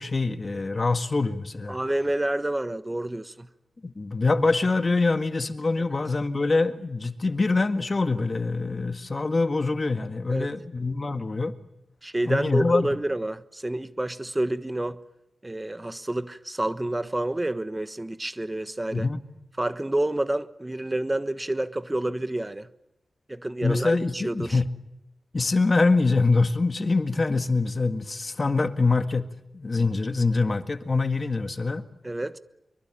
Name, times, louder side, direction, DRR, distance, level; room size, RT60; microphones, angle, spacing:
voice 1, 0.0-1.8 3.8-11.6 12.3-12.9 18.9-19.2 23.6-24.7 25.3-29.3 29.5-31.8, left 3 dB, 40° left, 1.8 m, -24 dB
voice 2, 1.7-3.5 10.3-10.5 12.0-15.0 15.4-19.1 19.6-22.7 23.3-24.6 32.0-32.4, right 1 dB, 20° right, 1.3 m, -29 dB
24.5 x 23.0 x 9.0 m
cardioid pair, 60°, 0 cm